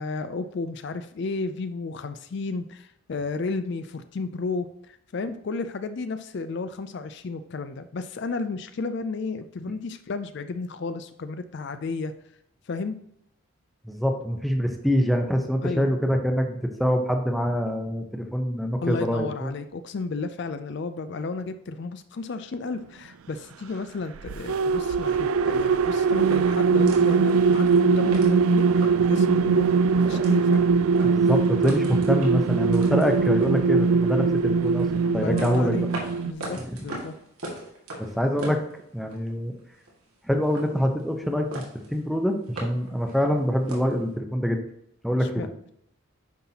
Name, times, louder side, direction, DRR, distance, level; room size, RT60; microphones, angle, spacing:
voice 1, 0.0-12.1 12.7-13.0 15.6-15.9 18.8-30.6 35.0-35.9 36.2-37.1 45.2-45.7, left 3 dB, 50° left, 10 dB, 0.4 m, -33 dB
voice 2, 13.8-19.5 31.0-34.9 35.1-35.9 36.6-36.8 38.0-38.6 38.9-39.5 40.2-41.6 41.9-44.6 45.0-45.5, equal, ahead, 3 dB, 0.7 m, -25 dB
sound 1, 24.2-36.3, right 5 dB, 75° right, 0.3 m, -21 dB
sound 2, 25.8-29.2 29.6-29.7 30.0-30.6 30.9-34.1 34.6-39.3 39.6-40.2 40.4-41.3 41.5-42.0 42.3-44.0, right 1 dB, 90° right, 2.0 m, -39 dB
9.4 x 5.7 x 2.8 m, 0.75 s
head